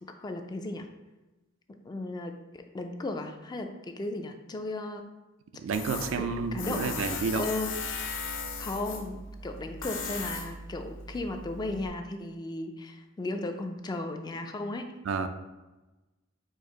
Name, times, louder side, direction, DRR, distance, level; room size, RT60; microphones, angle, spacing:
voice 1, 0.0-0.9 1.9-5.1 6.2-6.9 7.3-7.7 8.6-14.9, left 2 dB, 20° left, 6 dB, 0.3 m, -35 dB
voice 2, 5.6-7.5 15.1-15.3, right 5 dB, 80° right, 9 dB, 0.4 m, -30 dB
Tools, 5.7-11.9, left 4 dB, 65° left, 0.6 m, -37 dB
4.5 x 2.5 x 4.6 m, 1.1 s
head